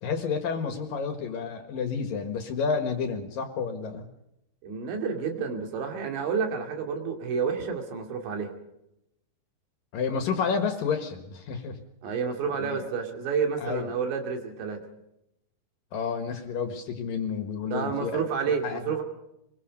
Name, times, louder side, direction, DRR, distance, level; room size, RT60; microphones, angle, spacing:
voice 1, 0.0-4.1 9.9-11.8 12.6-12.8 13.6-13.9 15.9-18.2 18.6-18.9, left 5 dB, 60° left, 7 dB, 2.8 m, -30 dB
voice 2, 4.6-8.5 12.0-14.8 17.7-19.0, right 6 dB, 75° right, 4 dB, 4.8 m, -30 dB
24.0 x 22.5 x 5.3 m, 0.85 s
omnidirectional pair, 5.3 m